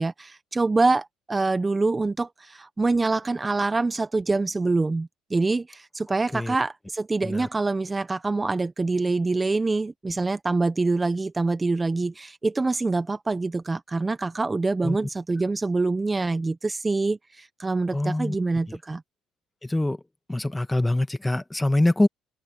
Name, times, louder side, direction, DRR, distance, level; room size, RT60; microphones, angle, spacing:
voice 1, 0.0-19.0, right 3 dB, 20° right, 0.7 m, -25 dB
voice 2, 17.9-18.3 19.6-20.0 20.3-22.1, left 1 dB, 10° left, 1.4 m, -24 dB
open air
supercardioid pair, 95°, 0 cm